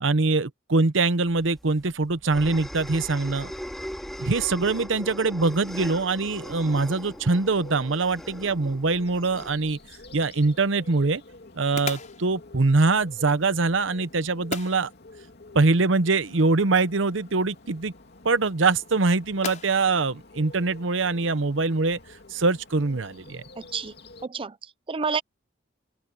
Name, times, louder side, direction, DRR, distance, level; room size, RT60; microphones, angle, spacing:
voice 1, 0.0-3.5 4.2-9.8 10.1-11.2 11.5-14.9 15.5-17.9 18.2-22.0 22.3-23.4, right 3 dB, 70° right, 0.9 m, -23 dB
sound 1, 1.4-10.2, equal, ahead, 3.1 m, -39 dB
Bird, 6.7-24.3, left 2 dB, 55° left, 2.5 m, -49 dB
sound 2, 9.6-21.3, left 5 dB, 40° left, 6.3 m, -43 dB
voice 2, 23.6-23.9 24.2-25.2, right 5 dB, 25° right, 0.5 m, -30 dB
head